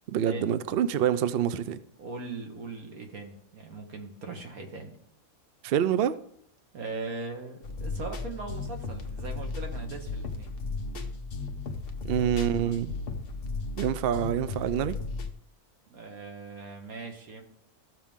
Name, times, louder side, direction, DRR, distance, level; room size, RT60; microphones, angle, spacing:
voice 1, 0.1-1.8 5.6-6.2 12.1-12.9 13.8-15.0, right 9 dB, 60° right, 0.6 m, -26 dB
voice 2, 2.0-4.9 6.7-10.5 12.0-12.3 12.6-12.8 15.9-17.4, right 3 dB, 85° right, 2.0 m, -40 dB
sound 1, 7.6-15.3, left 3 dB, 50° left, 0.9 m, -35 dB
14.5 x 6.0 x 3.6 m
omnidirectional pair, 1.5 m